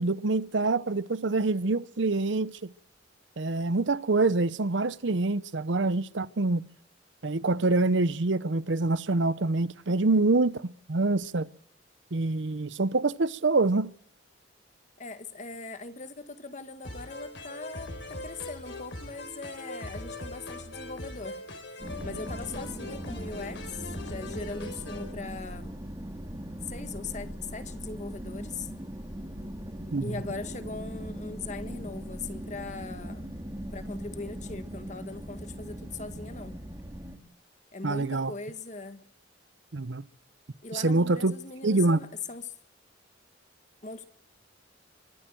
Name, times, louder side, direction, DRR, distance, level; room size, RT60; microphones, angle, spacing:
voice 1, 0.0-2.6 3.4-6.6 7.2-10.6 10.9-11.5 12.1-13.9 29.9-30.1 37.8-38.3 39.7-40.0 40.7-41.3 41.6-42.0, right 3 dB, 75° right, 0.8 m, -25 dB
voice 2, 9.9-10.2 15.0-21.4 22.0-25.7 26.6-28.7 30.0-33.4 33.7-36.6 37.7-39.0 40.6-42.5 43.8-44.1, left 4 dB, 40° left, 1.5 m, -40 dB
sound 1, 16.8-25.1, left 1 dB, 65° left, 4.5 m, -41 dB
sound 2, 21.8-37.2, equal, 20° right, 2.5 m, -40 dB
24.0 x 16.0 x 7.7 m
head